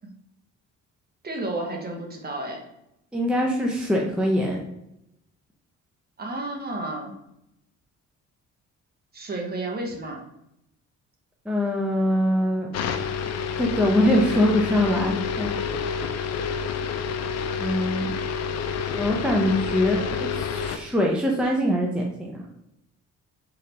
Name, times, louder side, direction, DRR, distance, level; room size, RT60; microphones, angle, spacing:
voice 1, 1.2-2.6 6.2-7.2 9.1-10.2, right 2 dB, 30° right, 1 dB, 1.0 m, -31 dB
voice 2, 3.1-4.6 11.5-12.7 13.6-15.5 17.6-18.1 18.9-22.4, equal, 5° right, -1 dB, 0.6 m, -23 dB
sound 1, 12.7-20.8, left 6 dB, 60° left, 0.4 m, -28 dB
3.8 x 3.4 x 2.8 m, 0.82 s
cardioid pair, 90°, 30 cm